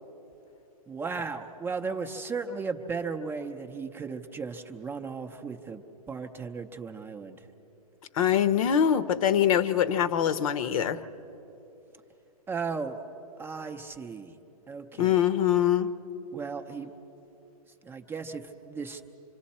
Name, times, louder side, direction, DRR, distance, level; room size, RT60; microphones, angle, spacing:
voice 1, 0.9-7.4 12.5-13.0 13.4-14.3 14.7-15.3 16.3-16.9 17.8-19.0, right 5 dB, 10° right, 5 dB, 0.6 m, -36 dB
voice 2, 8.1-11.0 15.0-15.9, left 9 dB, 60° left, 13 dB, 0.9 m, -23 dB
26.5 x 24.5 x 4.3 m, 3.0 s
hypercardioid pair, 145°, 20 cm